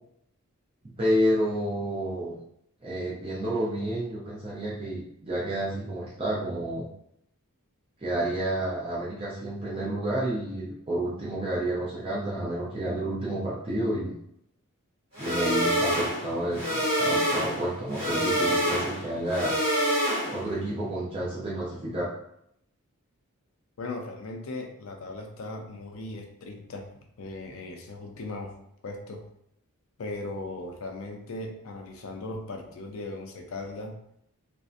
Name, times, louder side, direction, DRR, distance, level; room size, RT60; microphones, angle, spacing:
voice 1, 1.0-2.4 2.8-6.9 8.0-14.2 15.2-19.5 20.3-22.1, right 1 dB, 25° right, -7 dB, 0.4 m, -30 dB
sound 1, 15.2-20.6, equal, 50° right, 1.3 m, -27 dB
voice 2, 23.8-26.9 27.2-28.5 28.8-29.3 30.0-33.9, left 2 dB, 65° left, 3 dB, 0.4 m, -38 dB
2.5 x 2.1 x 2.4 m, 0.74 s
head